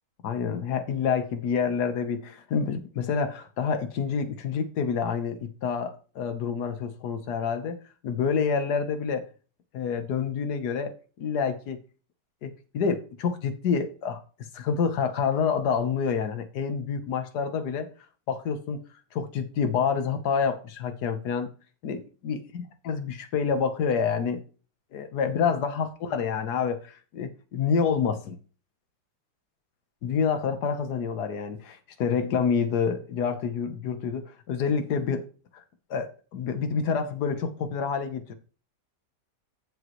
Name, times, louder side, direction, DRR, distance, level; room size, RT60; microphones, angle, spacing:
voice 1, 0.2-7.8 8.0-9.3 9.7-11.8 12.4-14.2 14.5-17.9 18.3-18.8 19.1-21.5 21.8-24.4 24.9-28.4 30.0-35.3 35.9-38.3, left 6 dB, 70° left, 1.7 m, -28 dB
14.0 x 7.1 x 3.1 m
omnidirectional pair, 1.8 m